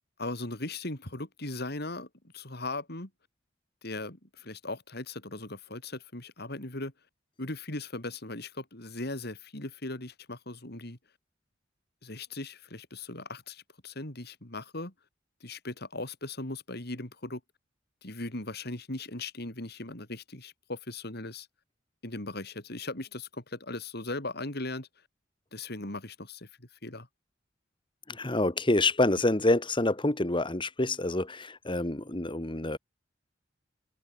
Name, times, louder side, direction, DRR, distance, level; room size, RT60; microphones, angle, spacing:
voice 1, 0.2-2.1 2.3-3.1 3.8-6.9 7.4-11.0 12.0-14.9 15.4-17.4 18.0-21.5 22.0-24.9 25.5-27.1, left 2 dB, 55° left, 4.0 m, -38 dB
voice 2, 28.1-32.8, left 2 dB, 25° left, 1.8 m, -27 dB
open air
head